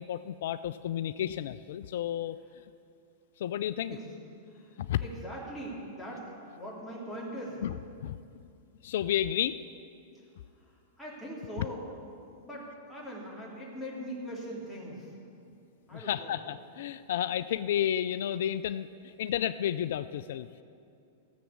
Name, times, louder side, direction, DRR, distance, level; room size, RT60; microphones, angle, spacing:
voice 1, 0.0-2.4 3.4-4.0 4.8-5.0 7.6-7.7 8.0-8.2 8.8-9.6 11.6-11.7 15.9-20.6, left 11 dB, 65° left, 14 dB, 0.3 m, -31 dB
voice 2, 3.9-4.2 4.5-4.7 5.0-6.3 6.5-7.6 11.0-15.1 15.9-16.3, equal, 5° left, -7 dB, 3.4 m, -41 dB
14.5 x 7.3 x 7.2 m, 2.5 s
hypercardioid pair, 110°, 0 cm